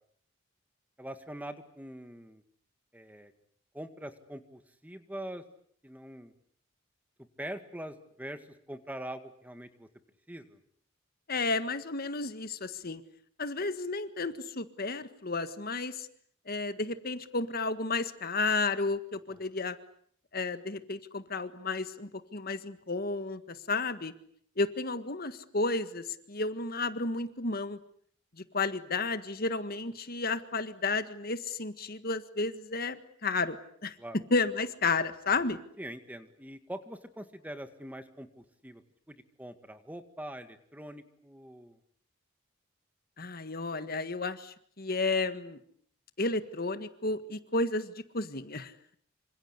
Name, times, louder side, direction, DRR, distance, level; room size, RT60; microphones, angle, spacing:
voice 1, 1.0-2.4 2.9-3.3 3.7-5.4 5.8-6.3 7.4-9.9 10.3-10.6 19.3-19.5 34.0-34.2 35.8-38.8 39.1-41.8, right 1 dB, 10° right, 9 dB, 1.9 m, -43 dB
voice 2, 11.3-13.0 13.4-16.1 16.5-19.8 20.3-24.1 24.6-27.8 28.5-33.9 34.3-35.6 43.2-45.6 46.2-48.7, left 3 dB, 50° left, 11 dB, 1.6 m, -32 dB
27.5 x 26.0 x 8.2 m, 0.62 s
head